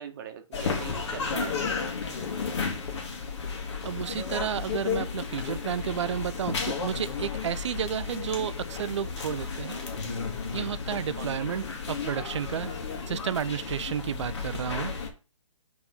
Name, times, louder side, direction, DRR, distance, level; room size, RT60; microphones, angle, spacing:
voice 1, 0.0-1.7 11.1-11.5, right 8 dB, 35° right, 1.1 m, -41 dB
sound 1, 0.5-15.1, left 5 dB, 55° left, 1.8 m, -33 dB
voice 2, 3.8-9.8 10.5-12.7 13.1-14.9, right 8 dB, 60° right, 0.5 m, -31 dB
4.4 x 4.2 x 5.7 m
hypercardioid pair, 150°, 17 cm